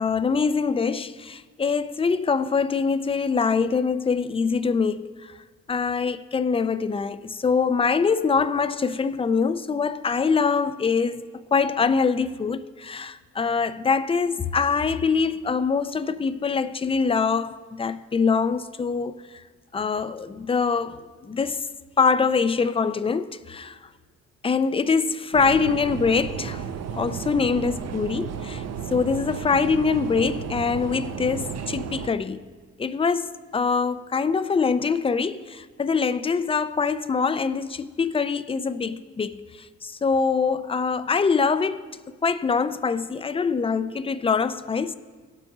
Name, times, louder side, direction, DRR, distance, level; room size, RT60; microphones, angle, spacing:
voice 1, 0.0-5.0 5.7-11.2 11.5-19.2 19.7-21.7 22.0-23.8 24.4-26.6 26.9-28.6 28.9-32.5 32.8-39.4 39.8-44.9, left 5 dB, 20° left, 0.5 m, -24 dB
sound 1, 25.3-32.1, right 7 dB, 55° right, 0.7 m, -33 dB
17.5 x 6.1 x 3.9 m
cardioid pair, 90°, 30 cm